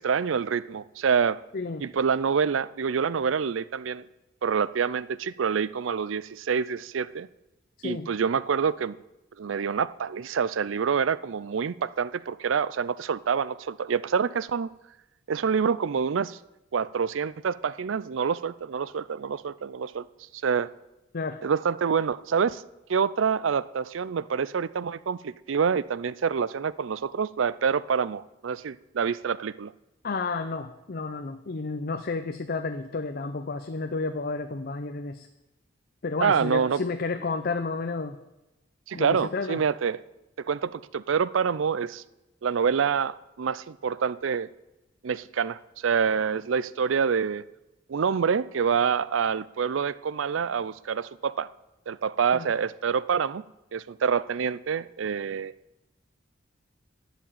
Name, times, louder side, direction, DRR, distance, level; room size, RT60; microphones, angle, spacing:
voice 1, 0.0-1.4 1.8-4.1 4.4-7.3 7.8-9.0 9.4-14.7 15.3-16.4 16.7-20.1 20.4-20.7 21.4-22.6 22.9-29.7 36.2-36.8 38.9-40.0 40.4-42.0 42.4-44.5 45.0-47.4 47.9-51.5 51.9-53.4 53.7-55.5, right 6 dB, 85° right, 0.5 m, -27 dB
voice 2, 1.5-1.9 7.8-8.1 21.1-21.4 30.0-35.3 36.0-38.2 38.9-39.6 52.3-52.5, left 3 dB, 50° left, 0.6 m, -31 dB
11.5 x 7.1 x 9.1 m
head